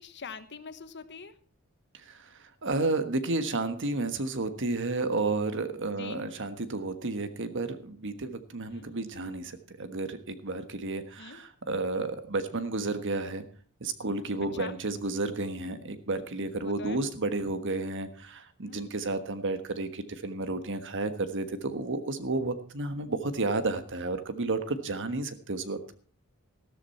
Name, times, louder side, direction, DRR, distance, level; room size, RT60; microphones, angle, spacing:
voice 1, 0.0-1.3 5.8-6.2 8.7-8.9 11.2-11.4 14.5-14.7 16.5-17.0 18.6-18.8, left 5 dB, 55° left, 11 dB, 1.2 m, -44 dB
voice 2, 1.9-13.4 13.8-25.9, right 3 dB, 60° right, 10 dB, 1.4 m, -32 dB
14.0 x 13.0 x 4.3 m, 0.43 s
head